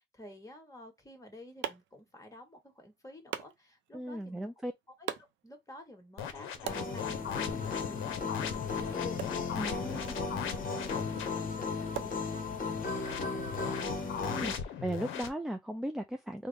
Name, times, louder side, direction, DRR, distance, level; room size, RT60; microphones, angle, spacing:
voice 1, 0.0-4.5 5.0-9.2 9.8-10.3 10.9-13.9, left 2 dB, 15° left, 1.4 m, -51 dB
sound 1, 0.9-12.9, right 10 dB, 70° right, 0.5 m, -46 dB
voice 2, 3.9-4.7 9.6-10.0 14.3-16.5, right 1 dB, ahead, 0.3 m, -37 dB
sound 2, 6.2-11.4 12.8-15.3, left 8 dB, 80° left, 0.6 m, -39 dB
sound 3, 6.7-14.6, left 4 dB, 45° left, 1.0 m, -36 dB
3.7 x 2.1 x 3.3 m
cardioid pair, 90°, 20 cm